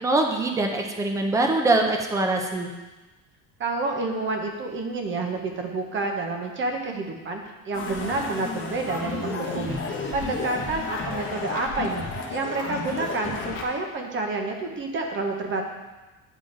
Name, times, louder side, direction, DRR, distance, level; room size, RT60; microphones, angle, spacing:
voice 1, 0.0-2.7, right 2 dB, 10° right, 3 dB, 0.3 m, -23 dB
voice 2, 3.6-15.6, right 3 dB, 30° right, 3 dB, 0.8 m, -29 dB
sound 1, 7.7-13.6, left 4 dB, 30° left, 0.9 m, -32 dB
10.0 x 3.8 x 3.8 m, 1.1 s
cardioid pair, 170°, 40 cm